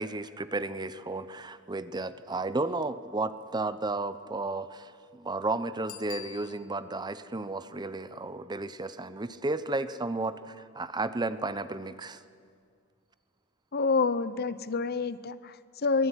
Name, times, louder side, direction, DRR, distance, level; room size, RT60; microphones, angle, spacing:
voice 1, 0.0-12.2, right 2 dB, 20° right, 13 dB, 0.7 m, -33 dB
Bicycle bell, 5.8-7.0 12.5-12.6, left 11 dB, 65° left, 1.7 m, -46 dB
voice 2, 13.7-16.1, left 4 dB, 45° left, 15 dB, 0.8 m, -28 dB
23.0 x 18.5 x 9.8 m, 2.2 s
head